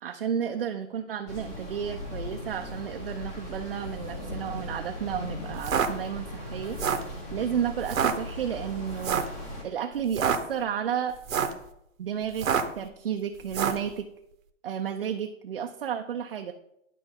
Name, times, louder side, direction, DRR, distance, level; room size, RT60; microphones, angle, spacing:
voice 1, 0.0-6.8 7.3-9.3 9.6-11.2 12.0-12.5 12.8-14.1 14.6-16.5, right 8 dB, 45° right, 5 dB, 0.5 m, -32 dB
sound 1, 1.3-9.6, left 1 dB, 15° left, 0.8 m, -38 dB
sound 2, 5.5-5.9 6.6-7.1 7.8-8.1 9.0-9.4 10.0-10.4 11.1-11.6 12.3-12.8 13.5-13.9, right 7 dB, 80° right, 1.0 m, -26 dB
11.5 x 4.6 x 3.6 m, 0.78 s
hypercardioid pair, 160°, 40 cm